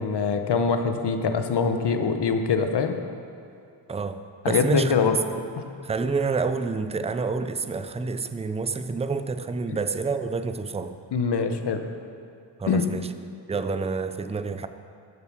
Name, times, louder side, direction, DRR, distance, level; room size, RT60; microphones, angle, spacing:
voice 1, 0.0-3.0 4.4-5.2 9.7-9.8 11.1-11.8 12.7-12.8, left 5 dB, 60° left, 7 dB, 1.0 m, -24 dB
voice 2, 3.9-5.0 5.8-11.0 12.6-13.1 13.5-14.7, right 4 dB, 15° right, 10 dB, 0.4 m, -28 dB
12.5 x 7.1 x 6.2 m, 2.7 s
wide cardioid pair, 115°, 46 cm